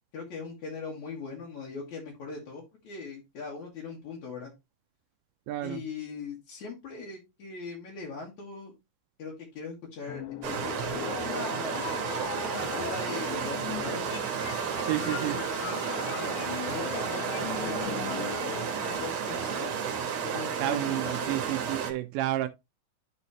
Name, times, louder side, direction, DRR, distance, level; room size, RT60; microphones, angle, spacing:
voice 1, 0.1-4.5 5.6-8.7 9.2-12.0 12.5-14.0 15.0-19.8 20.2-21.5, left 4 dB, 65° left, 2.9 m, -40 dB
voice 2, 5.5-5.8 14.8-15.4 20.6-22.5, right 15 dB, 85° right, 2.2 m, -30 dB
sound 1, 10.1-19.0, left 14 dB, 80° left, 1.7 m, -39 dB
sound 2, 10.4-21.9, right 7 dB, 60° right, 2.4 m, -32 dB
11.5 x 4.1 x 2.9 m
omnidirectional pair, 3.8 m